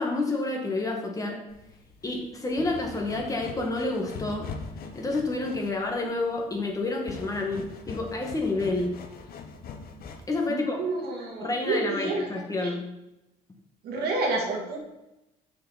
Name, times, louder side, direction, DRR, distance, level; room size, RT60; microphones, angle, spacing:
voice 1, 0.0-1.4 2.0-4.5 4.9-8.9 10.3-10.8 11.4-12.9, left 2 dB, 20° left, 0 dB, 1.6 m, -29 dB
sound 1, 1.5-10.5, left 5 dB, 60° left, 1.0 m, -42 dB
voice 2, 10.5-12.7 13.8-14.8, right 3 dB, 70° right, 0 dB, 2.2 m, -30 dB
6.7 x 6.5 x 4.1 m, 0.92 s
cardioid pair, 110°, 17 cm